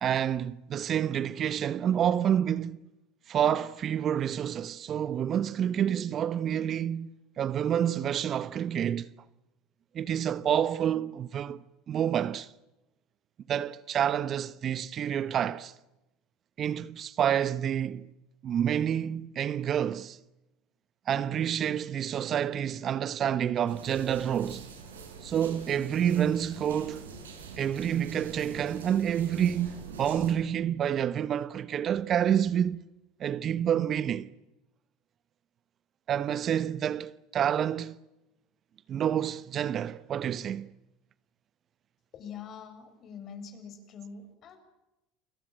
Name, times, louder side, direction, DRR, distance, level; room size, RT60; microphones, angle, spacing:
voice 1, 0.0-2.8 3.3-7.1 7.4-9.1 9.9-11.6 11.9-12.5 13.5-15.7 16.6-18.1 18.4-20.2 21.1-24.6 25.2-27.1 27.6-32.8 33.2-34.3 36.1-37.9 38.9-40.7, right 9 dB, 45° right, 1.1 m, -28 dB
sound 1, 23.7-30.3, right 4 dB, 90° right, 5.7 m, -45 dB
voice 2, 42.1-44.6, left 6 dB, 45° left, 7.4 m, -44 dB
29.0 x 22.0 x 7.6 m
hypercardioid pair, 75°, 0 cm